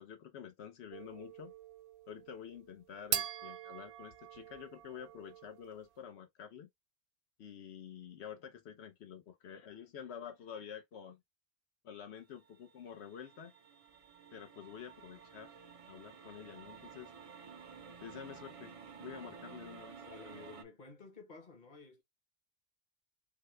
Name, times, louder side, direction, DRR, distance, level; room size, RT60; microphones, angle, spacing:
voice 1, 0.0-1.5 2.1-6.7 7.4-11.2 11.8-13.5 14.3-15.5 15.9-17.1 18.0-18.7 19.0-20.0, left 8 dB, 80° left, 1.0 m, -49 dB
sound 1, 0.9-5.7, right 9 dB, 75° right, 0.9 m, -43 dB
sound 2, 12.3-20.6, right 6 dB, 40° right, 0.5 m, -53 dB
voice 2, 20.1-22.0, left 4 dB, 45° left, 1.1 m, -53 dB
4.0 x 2.1 x 3.1 m
omnidirectional pair, 1.1 m